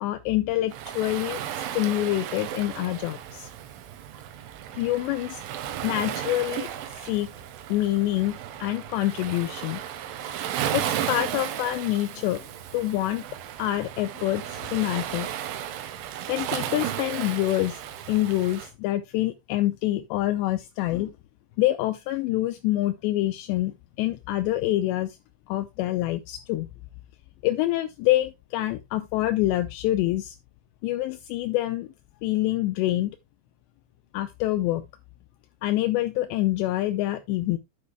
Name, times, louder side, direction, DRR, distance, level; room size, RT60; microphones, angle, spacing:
voice 1, 0.0-3.5 4.7-5.4 5.8-7.3 7.7-9.8 10.2-10.4 10.7-13.3 13.6-15.3 16.3-17.8 18.1-21.1 21.6-25.2 25.5-26.7 27.4-30.4 30.8-31.9 32.2-33.2 34.1-34.8 35.6-37.6, left 15 dB, 85° left, 2.5 m, -26 dB
Waves surf, 0.7-18.7, right 10 dB, 80° right, 3.5 m, -34 dB
9.8 x 9.6 x 2.2 m
omnidirectional pair, 5.6 m